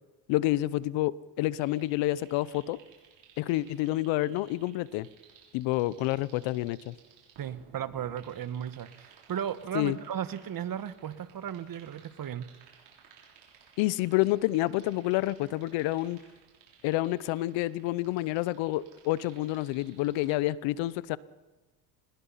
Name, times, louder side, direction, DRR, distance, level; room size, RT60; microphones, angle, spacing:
voice 1, 0.3-2.8 3.4-5.1 5.5-6.9 9.7-10.0 13.8-16.2 16.8-21.2, left 17 dB, 75° left, 0.9 m, -28 dB
sound 1, 1.5-20.3, right 7 dB, 75° right, 7.0 m, -58 dB
voice 2, 7.4-12.5, right 9 dB, 50° right, 1.6 m, -35 dB
24.0 x 21.0 x 5.7 m
supercardioid pair, 80°, 45 cm